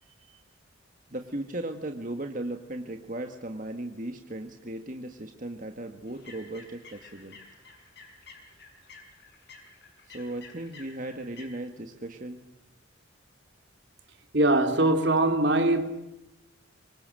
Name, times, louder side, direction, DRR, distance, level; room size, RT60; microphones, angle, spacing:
voice 1, 1.1-7.4 10.1-12.4, right 1 dB, 40° right, 1.8 m, -37 dB
sound 1, 6.1-11.5, left 4 dB, 55° left, 6.7 m, -51 dB
voice 2, 14.3-15.9, right 2 dB, 55° right, 2.9 m, -22 dB
27.0 x 25.5 x 7.8 m
head